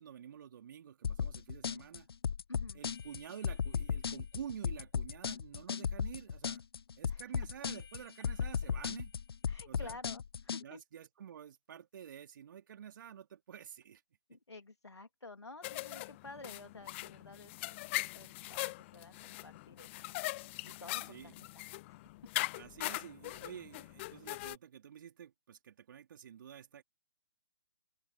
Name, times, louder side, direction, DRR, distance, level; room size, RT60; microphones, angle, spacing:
voice 1, 0.0-2.1 2.7-6.6 7.0-9.1 9.7-10.0 10.6-14.0 14.3-14.4 21.1-21.3 22.5-26.8, right 9 dB, 50° right, 3.8 m, -49 dB
sound 1, 1.0-10.6, left 6 dB, 65° left, 0.6 m, -36 dB
voice 2, 2.5-2.8 7.1-7.2 9.5-10.8 14.3-20.1 20.6-22.0, left 3 dB, 80° left, 2.9 m, -52 dB
sound 2, 15.6-24.6, left 20 dB, 25° left, 0.7 m, -41 dB
open air
figure-of-eight pair, 130°, 14 cm